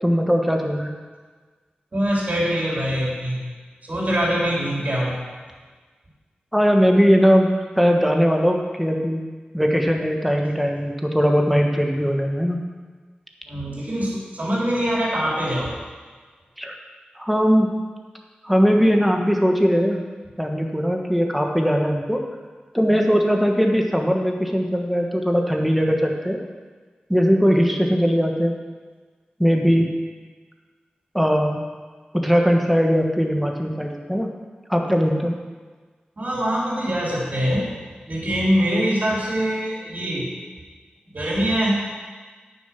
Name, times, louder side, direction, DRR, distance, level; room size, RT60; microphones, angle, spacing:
voice 1, 0.0-0.9 6.5-7.5 7.8-9.2 9.5-12.6 16.6-16.8 17.2-17.7 18.4-20.0 20.4-22.2 22.7-26.4 27.1-28.6 29.4-29.9 31.1-31.6 32.1-34.3 34.7-35.4, equal, ahead, 2 dB, 1.4 m, -19 dB
voice 2, 1.9-3.4 3.8-5.2 13.5-15.8 36.2-37.7 38.1-40.3 41.1-41.8, equal, 50° right, -5 dB, 3.6 m, -23 dB
9.2 x 6.8 x 5.9 m, 1.4 s
cardioid pair, 50°, 3 cm